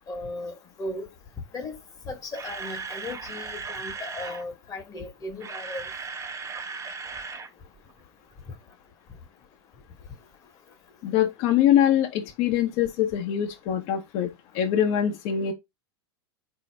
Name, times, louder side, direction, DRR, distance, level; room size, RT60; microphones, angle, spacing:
voice 1, 0.1-1.1 1.5-1.8 2.0-5.8, left 2 dB, 25° left, 1.1 m, -36 dB
Camera, 2.0-4.4 5.2-7.5 7.8-7.9 8.4-8.5, right 5 dB, 25° right, 0.8 m, -37 dB
voice 2, 11.0-15.5, left 10 dB, 50° left, 0.8 m, -23 dB
4.0 x 2.7 x 3.2 m
hypercardioid pair, 110°, 13 cm